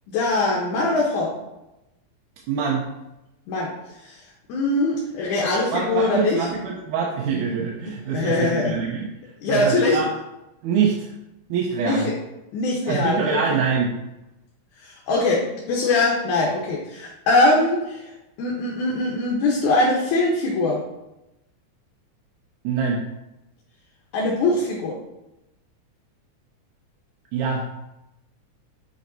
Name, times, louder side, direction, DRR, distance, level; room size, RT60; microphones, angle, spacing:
voice 1, 0.1-1.3 3.5-3.7 4.0-4.2 4.5-6.5 8.1-8.8 9.4-10.0 11.8-12.1 12.5-13.6 14.8-18.0 18.4-20.8 24.1-24.9, left 2 dB, 80° left, -3 dB, 2.4 m, -22 dB
voice 2, 2.5-2.9 5.7-9.1 9.5-10.1 10.6-11.1 11.5-12.1 12.9-13.9 22.6-23.0 27.3-27.7, right 6 dB, 90° right, -2 dB, 2.2 m, -24 dB
7.5 x 5.2 x 2.6 m, 0.93 s
omnidirectional pair, 3.5 m